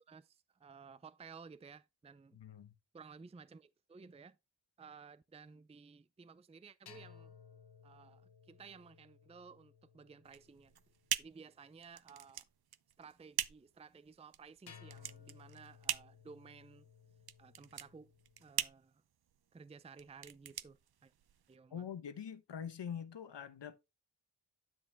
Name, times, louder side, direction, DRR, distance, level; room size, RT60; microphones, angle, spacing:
voice 1, 0.1-2.4 2.9-4.4 4.8-7.3 7.8-10.7 11.2-12.4 13.0-16.9 17.4-18.1 18.4-19.0 19.5-21.1 21.5-21.8, right 5 dB, 15° right, 0.4 m, -56 dB
voice 2, 2.3-2.7 21.7-23.8, left 8 dB, 90° left, 1.0 m, -44 dB
sound 1, 6.9-11.2 14.7-18.5, left 7 dB, 65° left, 1.0 m, -59 dB
sound 2, 10.2-21.6, right 9 dB, 60° right, 0.6 m, -43 dB
10.0 x 6.1 x 3.4 m
wide cardioid pair, 65°, 41 cm